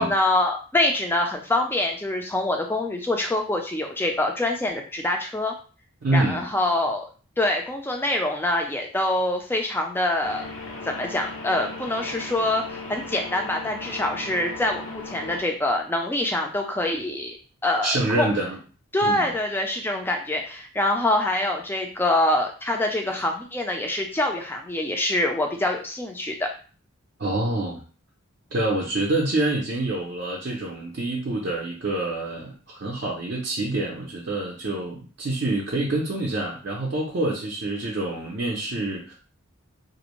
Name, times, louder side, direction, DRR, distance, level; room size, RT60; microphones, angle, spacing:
voice 1, 0.0-5.5 6.1-7.1 7.4-10.5 10.9-17.4 17.6-18.3 18.9-26.5, left 1 dB, 10° left, 2 dB, 0.4 m, -25 dB
voice 2, 6.0-6.5 17.8-18.6 19.0-19.3 27.2-27.8 28.5-39.1, right 2 dB, 50° right, -3 dB, 0.5 m, -26 dB
sound 1, 10.2-15.4, left 3 dB, 65° left, 0.6 m, -37 dB
2.5 x 2.0 x 2.9 m, 0.37 s
head